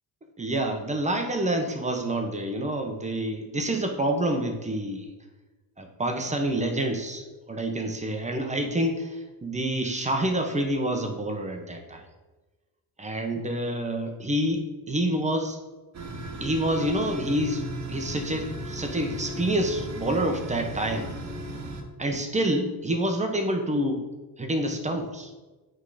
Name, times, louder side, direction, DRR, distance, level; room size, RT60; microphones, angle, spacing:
voice 1, 0.4-5.1 5.8-12.0 13.0-15.6 16.4-17.6 17.9-21.1 22.0-24.0 24.4-25.3, right 1 dB, 15° right, 4 dB, 0.9 m, -27 dB
sound 1, 15.9-21.8, right 1 dB, 40° right, 1.3 m, -36 dB
8.2 x 3.8 x 4.9 m, 1.2 s
cardioid pair, 120°, 40 cm